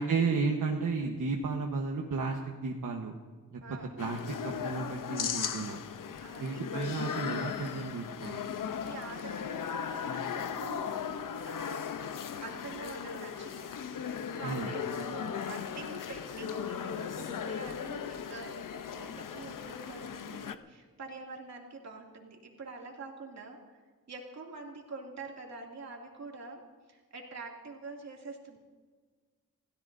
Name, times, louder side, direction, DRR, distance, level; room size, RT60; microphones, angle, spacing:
voice 1, 0.0-3.1 3.5-3.6 4.0-5.8 6.4-8.5 14.4-14.7, right 4 dB, 75° right, 1 dB, 1.3 m, -33 dB
sound 1, 4.0-20.5, left 7 dB, 80° left, 0.8 m, -37 dB
voice 2, 6.2-6.6 8.8-11.1 11.4-11.9 12.4-23.6 24.1-26.6 26.9-28.6, right 3 dB, 55° right, 0 dB, 2.6 m, -46 dB
28.5 x 16.5 x 2.7 m, 1.5 s
wide cardioid pair, 160°, 32 cm